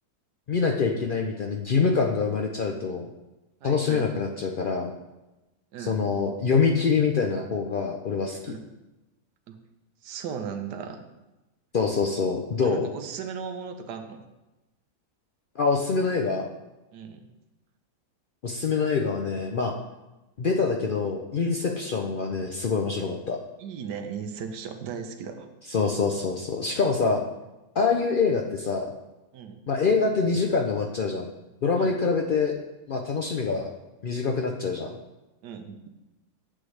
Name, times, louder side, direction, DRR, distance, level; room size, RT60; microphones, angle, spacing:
voice 1, 0.5-3.1 3.6-4.9 5.8-8.4 11.7-12.9 15.6-16.5 18.4-19.7 20.4-23.4 25.7-27.2 27.8-28.9 29.7-31.3 31.6-32.5 32.9-33.7 34.0-34.9, left 4 dB, 90° left, 2 dB, 0.4 m, -25 dB
voice 2, 3.6-4.0 5.7-6.0 8.4-8.6 9.5-9.6 10.0-11.0 12.6-14.2 16.9-17.3 23.6-25.5 29.3-29.6 31.7-32.0 35.4-35.8, right 6 dB, 85° right, 7 dB, 1.4 m, -36 dB
9.8 x 7.8 x 3.3 m, 1.0 s
omnidirectional pair, 1.7 m